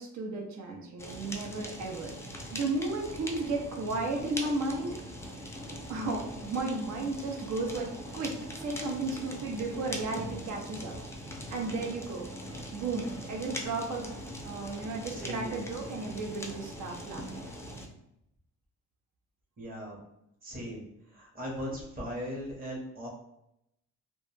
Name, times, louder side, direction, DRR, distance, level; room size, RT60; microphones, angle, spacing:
voice 1, 0.0-2.2 2.5-5.0 5.9-7.9 8.1-10.9 11.5-12.3 12.7-17.4, right 3 dB, 70° right, 1 dB, 0.6 m, -34 dB
Fire, 1.0-17.9, equal, 10° left, 0.4 m, -42 dB
voice 2, 15.1-15.6 19.6-20.0 20.4-20.8 21.1-23.1, equal, 30° right, -2 dB, 0.8 m, -38 dB
2.2 x 2.0 x 3.1 m, 0.80 s
cardioid pair, 90°, 30 cm